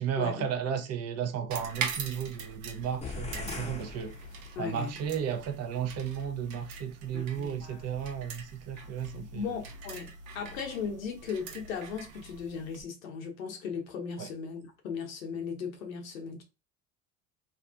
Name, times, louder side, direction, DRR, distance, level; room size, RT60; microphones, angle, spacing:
voice 1, 0.0-4.1 4.6-9.5 14.2-14.3, right 8 dB, 40° right, 0.6 m, -34 dB
sound 1, 1.5-12.8, right 5 dB, 75° right, 0.7 m, -42 dB
sound 2, 3.0-4.9, left 4 dB, 15° left, 0.6 m, -40 dB
voice 2, 4.6-4.9 7.1-7.8 8.7-8.9 9.1-16.4, left 6 dB, 90° left, 0.7 m, -37 dB
2.6 x 2.3 x 2.4 m
hypercardioid pair, 70°, 39 cm